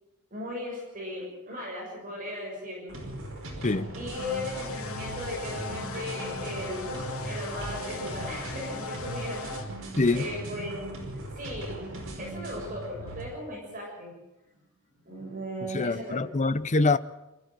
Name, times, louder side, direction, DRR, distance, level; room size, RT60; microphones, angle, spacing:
voice 1, 0.3-3.0 3.9-10.8 11.3-11.8 12.2-14.1 15.0-16.2, left 1 dB, 40° right, 6.9 m, -37 dB
sound 1, 2.9-13.2, right 1 dB, 65° right, 5.3 m, -39 dB
voice 2, 3.6-3.9 10.0-10.3 15.7-17.0, left 3 dB, 35° left, 0.7 m, -24 dB
sound 2, 4.1-9.6, left 2 dB, 70° left, 2.7 m, -38 dB
Wind instrument woodwind instrument, 4.3-9.5, right 2 dB, 10° left, 6.2 m, -55 dB
25.5 x 14.5 x 7.6 m
head